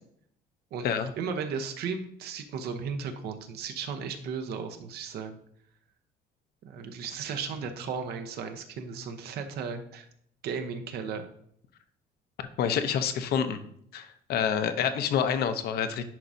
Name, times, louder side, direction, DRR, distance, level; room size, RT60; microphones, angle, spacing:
voice 1, 1.2-5.4 6.6-10.1 10.4-11.3, right 5 dB, 70° right, 7 dB, 1.0 m, -35 dB
voice 2, 12.6-13.6 13.9-16.0, left 8 dB, 70° left, 9 dB, 0.8 m, -27 dB
10.5 x 4.9 x 2.7 m, 0.67 s
cardioid pair, 110°, 17 cm